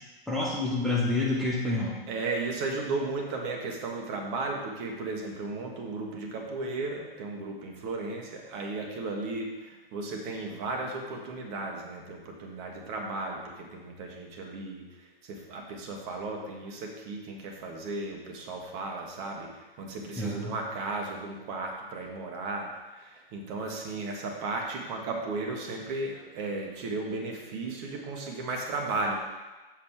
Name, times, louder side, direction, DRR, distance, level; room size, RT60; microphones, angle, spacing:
voice 1, 0.3-2.0 20.2-20.5, left 2 dB, ahead, -5 dB, 0.3 m, -28 dB
voice 2, 2.1-14.9 15.3-19.5 19.8-29.1, right 3 dB, 30° right, 0 dB, 1.3 m, -35 dB
7.3 x 5.3 x 4.7 m, 1.2 s
figure-of-eight pair, 115°, 30 cm